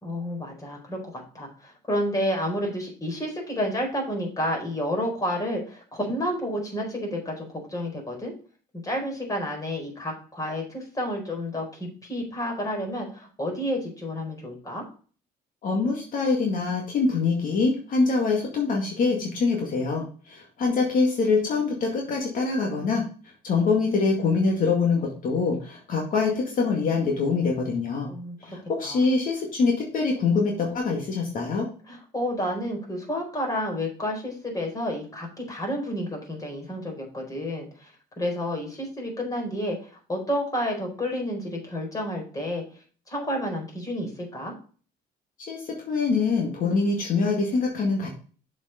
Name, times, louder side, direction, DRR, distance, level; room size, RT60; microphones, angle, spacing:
voice 1, 0.0-8.3 8.8-14.8 28.0-28.6 28.8-29.0 31.9-37.9 38.2-42.6 43.1-44.5, equal, 20° left, 0 dB, 4.3 m, -30 dB
voice 2, 15.6-23.0 23.4-28.1 28.4-31.7 45.5-48.1, left 4 dB, 55° left, 0 dB, 2.1 m, -24 dB
7.2 x 5.3 x 5.1 m, 0.40 s
cardioid pair, 110°, 17 cm